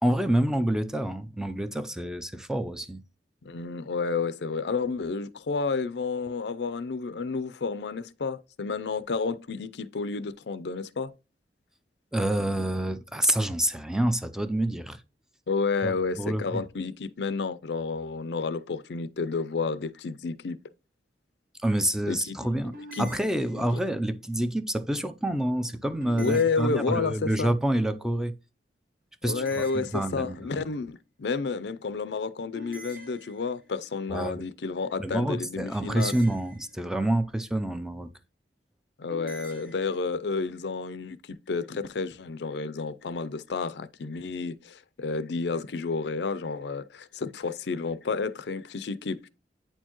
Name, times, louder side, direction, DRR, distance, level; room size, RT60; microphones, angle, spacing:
voice 1, 0.0-3.0 12.1-15.0 15.8-16.6 21.6-28.3 29.2-30.7 34.1-34.4 35.0-38.1, right 1 dB, 5° right, 0.4 m, -28 dB
voice 2, 3.4-11.1 15.5-20.6 22.1-22.4 22.9-23.2 26.2-27.5 29.2-36.2 39.0-49.3, left 4 dB, 70° left, 0.5 m, -30 dB
sound 1, 22.7-24.0 26.0-27.3 29.3-30.6 32.5-33.8 35.8-37.1 39.1-40.0, right 1 dB, 55° right, 1.3 m, -47 dB
8.9 x 4.5 x 3.0 m
head